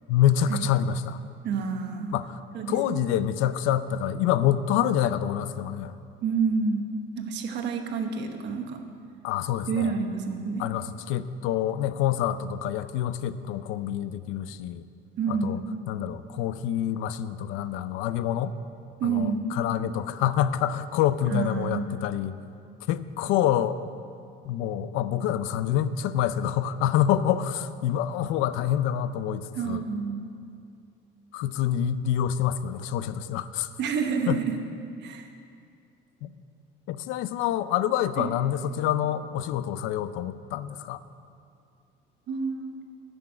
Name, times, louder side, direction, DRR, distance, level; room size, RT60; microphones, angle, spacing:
voice 1, 0.1-1.2 2.1-2.4 2.7-5.9 9.2-9.9 10.6-14.8 15.3-15.6 15.9-18.6 19.0-22.4 22.9-23.8 24.4-29.8 31.3-33.7 34.3-34.4 36.2-36.3 36.9-41.0, left 10 dB, 85° left, 14 dB, 0.5 m, -27 dB
voice 2, 1.4-2.2 2.5-3.0 6.2-8.8 9.7-10.6 15.2-15.6 19.0-19.5 21.3-21.9 29.5-30.3 33.8-34.6 35.0-35.3 38.2-38.3 42.3-42.7, right 5 dB, 65° right, 5 dB, 1.1 m, -28 dB
10.5 x 6.2 x 8.6 m, 2.4 s
cardioid pair, 130°, 20 cm